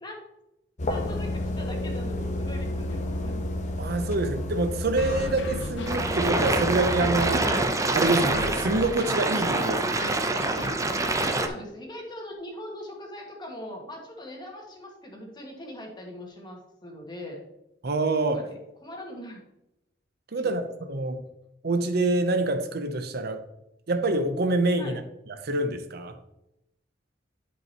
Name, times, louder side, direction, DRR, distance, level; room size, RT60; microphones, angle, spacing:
sound 1, 0.8-7.4, left 1 dB, 40° left, 0.9 m, -31 dB
voice 1, 0.9-3.4 11.1-17.4 18.3-19.4 20.3-20.5 24.8-25.0, left 1 dB, 25° left, 0 dB, 1.8 m, -41 dB
voice 2, 3.8-7.5 7.9-10.2 17.8-18.4 20.3-21.2 21.6-23.4 23.9-26.2, right 2 dB, 60° right, 8 dB, 0.7 m, -26 dB
sound 2, 5.0-11.4, left 2 dB, 75° left, 1.0 m, -38 dB
sound 3, 5.9-11.5, right 2 dB, 15° right, 0.6 m, -26 dB
11.0 x 5.4 x 2.9 m, 0.88 s
head